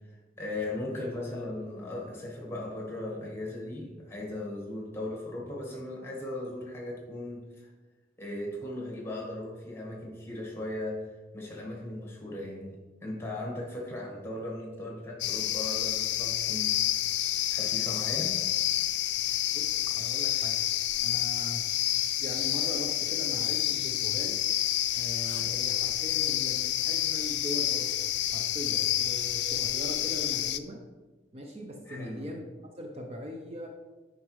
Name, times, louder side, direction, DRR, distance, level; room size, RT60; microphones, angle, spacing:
voice 1, 0.4-7.7 8.2-11.1 11.3-12.8 13.0-16.8 17.5-18.4 31.9-32.3, left 1 dB, 15° left, -2 dB, 1.4 m, -37 dB
sound 1, 15.2-30.6, left 13 dB, 75° left, 0.4 m, -29 dB
voice 2, 19.5-20.6 21.0-21.6 22.2-24.4 24.9-27.9 28.3-30.8 31.3-32.4 32.7-33.7, equal, 35° right, 1 dB, 0.6 m, -40 dB
9.5 x 5.1 x 3.1 m, 1.3 s
head